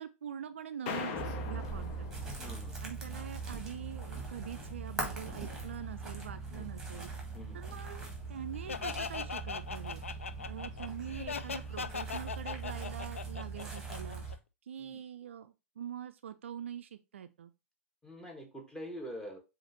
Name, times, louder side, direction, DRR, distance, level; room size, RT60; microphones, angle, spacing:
voice 1, 0.0-2.3 2.8-7.1 7.5-10.0 10.5-14.2 14.6-17.5, right 9 dB, 65° right, 0.4 m, -44 dB
sound 1, 0.9-2.8, left 6 dB, 45° left, 0.8 m, -41 dB
sound 2, 1.1-14.4, right 3 dB, 5° right, 1.7 m, -41 dB
voice 2, 2.4-2.8 6.5-6.6 7.3-7.6 14.8-15.0 18.0-19.4, equal, 10° left, 1.4 m, -45 dB
Laughter, 8.7-14.3, left 5 dB, 75° left, 0.3 m, -39 dB
7.0 x 2.5 x 2.9 m
figure-of-eight pair, 95°, 7 cm